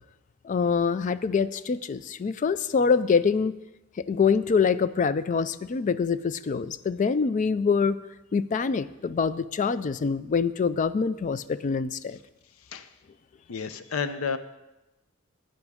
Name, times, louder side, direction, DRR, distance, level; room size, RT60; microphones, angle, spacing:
voice 1, 0.4-3.5 4.1-8.0 8.3-12.2, left 5 dB, 35° left, 15 dB, 0.3 m, -25 dB
voice 2, 13.5-14.4, left 6 dB, 90° left, 12 dB, 0.6 m, -31 dB
13.0 x 9.1 x 3.6 m, 0.98 s
head